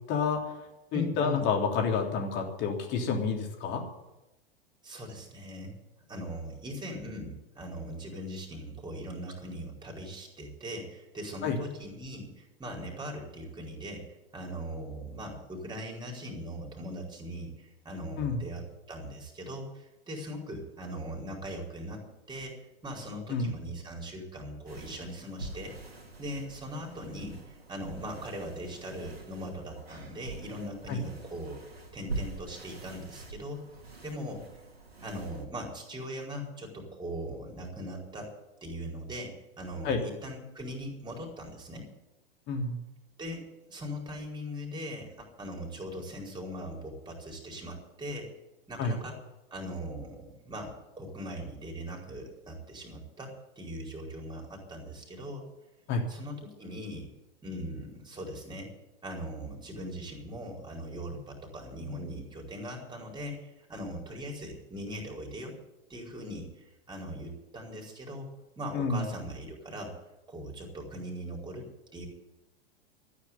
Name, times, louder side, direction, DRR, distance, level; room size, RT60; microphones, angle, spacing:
voice 1, 0.1-0.5 0.9-3.8 11.4-11.6 18.2-18.4 23.3-23.5 30.9-31.0 39.8-40.0 42.5-42.8 48.8-49.0 55.9-56.1 68.7-69.1, left 5 dB, 35° left, 2 dB, 3.4 m, -29 dB
voice 2, 0.9-1.5 4.8-5.7 6.1-14.0 14.3-22.5 22.8-25.7 26.2-31.6 31.9-33.6 34.0-34.4 35.0-38.3 38.6-41.9 43.2-48.3 48.7-49.2 49.5-55.4 56.1-57.1 57.4-58.7 59.0-65.5 65.9-66.5 66.9-68.3 68.6-69.9 70.3-72.1, equal, 15° right, 0 dB, 4.6 m, -40 dB
sound 1, 24.7-35.5, right 3 dB, 85° right, 2.7 m, -44 dB
13.0 x 9.9 x 9.5 m, 0.96 s
figure-of-eight pair, 95°, 30 cm